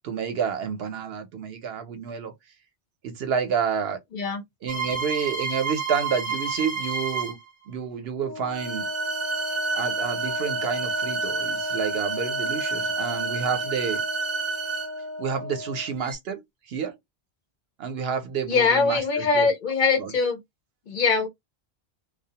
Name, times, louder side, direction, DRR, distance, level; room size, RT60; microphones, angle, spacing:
voice 1, 0.0-2.3 3.0-4.0 4.6-7.4 7.7-8.9 9.7-14.0 15.2-16.4 16.7-16.9 17.8-19.5 20.0-20.1, right 6 dB, 75° right, 0.9 m, -29 dB
voice 2, 4.1-4.4 18.5-20.4 20.9-21.3, left 4 dB, 55° left, 0.8 m, -22 dB
sound 1, 4.7-7.5 8.5-15.1 16.0-16.1, right 5 dB, 35° right, 0.6 m, -30 dB
Wind instrument woodwind instrument, 8.1-16.0, left 2 dB, 35° left, 0.3 m, -34 dB
2.2 x 2.0 x 2.8 m
omnidirectional pair, 1.1 m